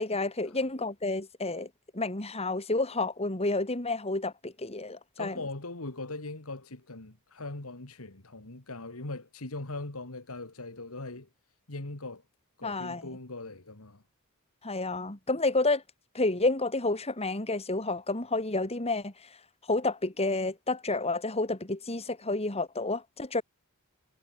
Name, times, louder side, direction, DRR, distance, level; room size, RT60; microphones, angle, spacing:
voice 1, 0.0-5.4 12.6-13.0 14.6-15.8 16.1-19.3 19.7-23.4, left 2 dB, 30° left, 2.7 m, -30 dB
voice 2, 5.2-11.3 11.7-12.2 12.6-14.0, left 2 dB, 75° left, 2.3 m, -40 dB
head